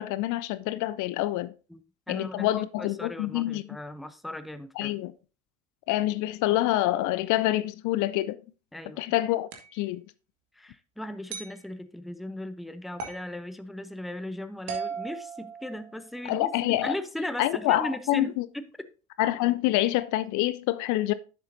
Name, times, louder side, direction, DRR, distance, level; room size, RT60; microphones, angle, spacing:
voice 1, 0.0-1.5 2.1-3.6 4.8-5.1 5.9-8.4 9.0-10.0 16.2-16.9 17.4-18.4 19.2-21.1, left 15 dB, 50° left, 0.6 m, -26 dB
voice 2, 2.1-5.0 8.7-9.1 10.5-18.9, left 1 dB, ahead, 0.6 m, -37 dB
sound 1, 9.5-9.8 11.3-11.6 13.0-13.3 14.7-16.1, right 6 dB, 70° right, 1.8 m, -37 dB
10.5 x 7.4 x 2.7 m
hypercardioid pair, 65°, 39 cm